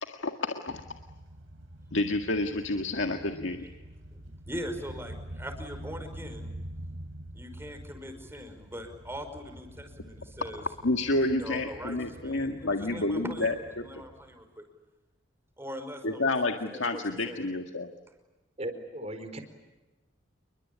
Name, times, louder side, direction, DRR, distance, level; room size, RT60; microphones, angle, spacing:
voice 1, 0.0-0.8 1.9-3.6 10.8-13.8 16.0-17.9, left 2 dB, 75° left, 4 dB, 1.9 m, -29 dB
sound 1, 0.7-14.5, right 1 dB, 85° right, 3.8 m, -46 dB
voice 2, 4.5-6.5 7.3-10.6 11.2-14.6 15.6-17.4, equal, 10° right, 6 dB, 5.6 m, -41 dB
voice 3, 18.6-19.4, right 1 dB, 35° right, 8 dB, 4.4 m, -37 dB
29.5 x 23.0 x 8.6 m, 1.1 s
head